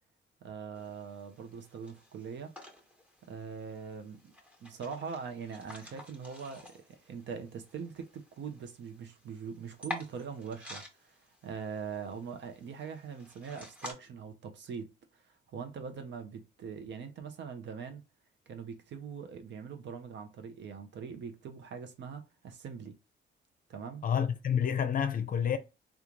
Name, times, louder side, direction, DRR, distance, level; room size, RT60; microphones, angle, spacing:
voice 1, 0.4-2.5 3.3-4.3 4.6-11.2 11.4-14.9 15.2-18.0 18.5-22.9 23.7-24.0, right 6 dB, 65° right, 0.8 m, -42 dB
sound 1, 0.8-13.9, left 1 dB, 5° right, 1.1 m, -50 dB
voice 2, 24.0-25.6, left 8 dB, 45° left, 0.5 m, -29 dB
3.7 x 2.4 x 3.0 m
cardioid pair, 90°, 20 cm